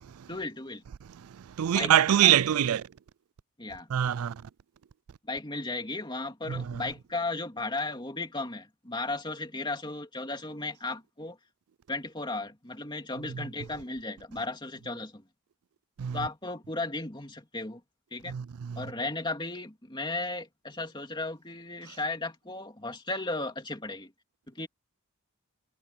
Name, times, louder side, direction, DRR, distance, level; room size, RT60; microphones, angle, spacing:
voice 1, 0.3-0.8 1.7-1.9 2.2-2.4 3.6-3.9 5.3-11.4 11.9-15.2 16.1-17.8 18.1-18.4 18.8-24.1 24.5-24.7, left 2 dB, 20° left, 2.8 m, -35 dB
voice 2, 1.1-2.9 3.9-4.4 6.5-6.8 13.3-13.5 16.0-16.2 18.3-18.9, right 10 dB, 85° right, 0.4 m, -25 dB
head